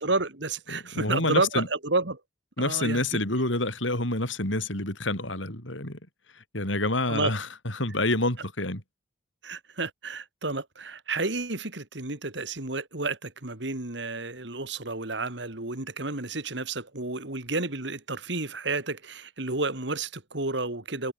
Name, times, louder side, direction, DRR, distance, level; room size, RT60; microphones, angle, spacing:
voice 1, 0.0-2.2 2.6-3.0 7.1-7.3 9.4-21.1, right 3 dB, 70° right, 2.7 m, -31 dB
voice 2, 0.7-1.7 2.6-6.0 6.5-8.8, left 2 dB, 85° left, 7.3 m, -28 dB
head